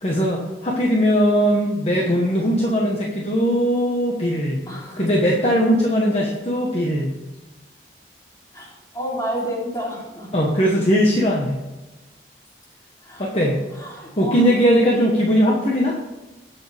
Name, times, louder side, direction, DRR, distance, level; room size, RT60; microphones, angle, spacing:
voice 1, 0.0-4.6 5.0-7.1 10.3-11.6 13.2-13.6 14.2-16.0, equal, 35° left, -1 dB, 1.3 m, -19 dB
voice 2, 4.7-5.1 8.5-10.3 13.0-13.3 13.7-14.4 14.7-14.8, equal, 20° left, -5 dB, 3.5 m, -30 dB
19.0 x 7.2 x 3.5 m, 1.1 s
head